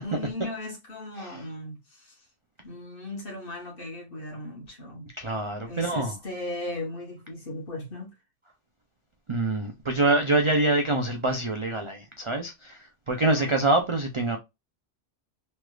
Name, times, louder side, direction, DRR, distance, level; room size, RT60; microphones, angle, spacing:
voice 1, 0.0-2.2 2.6-5.1 5.7-8.1 13.2-13.6, left 1 dB, 50° left, 1.3 m, -37 dB
voice 2, 5.2-6.1 9.3-14.4, right 2 dB, 55° right, 0.3 m, -25 dB
3.2 x 3.1 x 2.3 m
omnidirectional pair, 1.3 m